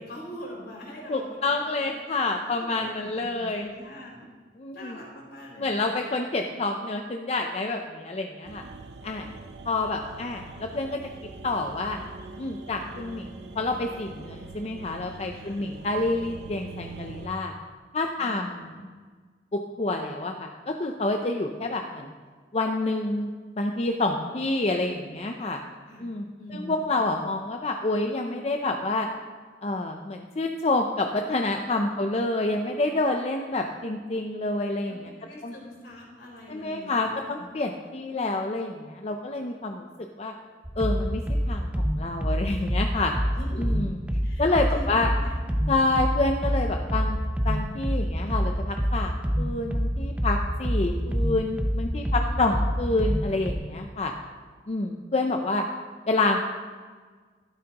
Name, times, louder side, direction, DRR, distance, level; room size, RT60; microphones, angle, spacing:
voice 1, 0.0-4.3 4.7-5.9 15.3-15.7 18.2-18.8 25.8-26.1 26.4-27.2 32.0-32.7 33.0-33.9 34.9-37.4 43.3-43.8 44.2-45.4 52.0-52.5, equal, 70° left, -2 dB, 3.8 m, -44 dB
voice 2, 1.1-3.7 4.6-5.0 5.6-8.6 9.0-9.3 9.7-11.0 11.4-12.0 12.4-13.3 13.6-17.5 17.9-18.5 19.5-22.1 22.5-23.3 23.6-25.6 26.0-26.3 26.5-29.1 29.6-35.1 35.4-35.5 36.5-39.9 40.2-40.3 40.8-41.2 41.5-43.1 43.6-43.9 44.4-45.1 45.7-47.2 47.4-54.1 54.7-55.6 56.1-56.4, left 2 dB, 35° left, 3 dB, 0.5 m, -28 dB
sound 1, 8.4-17.3, right 3 dB, 75° right, 0.7 m, -43 dB
sound 2, 40.6-53.5, equal, 10° right, 0.6 m, -27 dB
12.5 x 12.0 x 2.9 m, 1.5 s
head